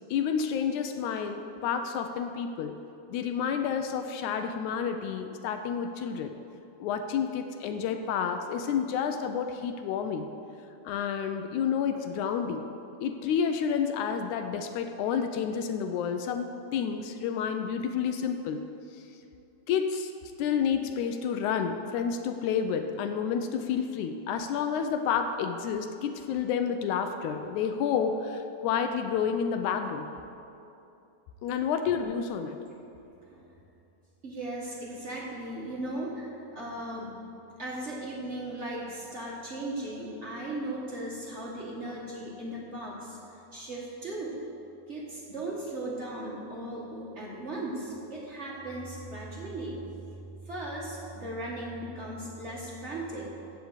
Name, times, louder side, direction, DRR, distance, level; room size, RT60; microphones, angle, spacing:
voice 1, 0.1-2.8 3.1-6.4 6.8-10.3 10.9-12.6 13.0-18.7 19.0-19.1 19.7-20.1 20.4-30.1 31.4-32.6, left 7 dB, 80° left, 7 dB, 1.9 m, -30 dB
voice 2, 32.9-33.6 34.2-37.2 37.6-44.4 44.9-49.8 50.4-53.3, right 1 dB, 40° right, -4 dB, 0.9 m, -37 dB
15.0 x 5.1 x 8.0 m, 2.7 s
omnidirectional pair, 3.7 m